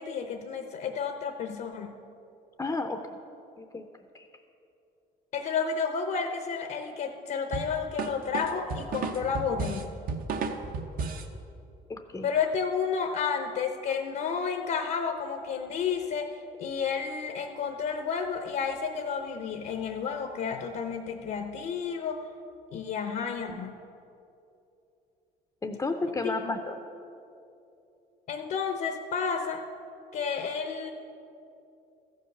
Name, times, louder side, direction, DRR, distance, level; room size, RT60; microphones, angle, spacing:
voice 1, 0.0-1.9 5.3-9.9 12.2-22.3 22.7-23.7 26.2-26.6 28.3-29.6 30.1-30.9, left 6 dB, 60° left, 5 dB, 0.8 m, -31 dB
voice 2, 2.6-3.0 3.6-3.8 4.1-4.3 11.9-12.3 25.6-26.8, left 3 dB, 15° left, 5 dB, 0.6 m, -32 dB
sound 1, 7.5-11.3, right 4 dB, 60° right, 0.9 m, -33 dB
14.5 x 5.6 x 6.7 m, 2.8 s
cardioid pair, 110°, 17 cm